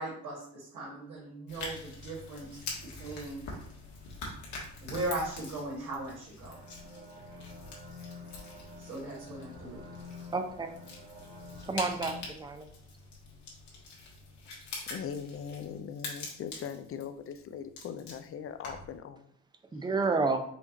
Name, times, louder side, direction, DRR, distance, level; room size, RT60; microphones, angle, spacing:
voice 1, 0.0-3.5 4.8-6.6 8.8-9.9, right 2 dB, 80° right, -8 dB, 1.7 m, -38 dB
sound 1, 1.5-19.0, left 3 dB, 75° left, 1.5 m, -45 dB
sound 2, 6.4-12.2, left 2 dB, 40° right, 1.6 m, -48 dB
voice 2, 10.3-10.7 11.7-12.7 19.7-20.4, right 3 dB, 15° right, 7 dB, 0.5 m, -30 dB
voice 3, 14.9-19.3, left 7 dB, 50° left, 10 dB, 0.4 m, -40 dB
5.1 x 2.4 x 4.0 m, 0.68 s
cardioid pair, 90°, 30 cm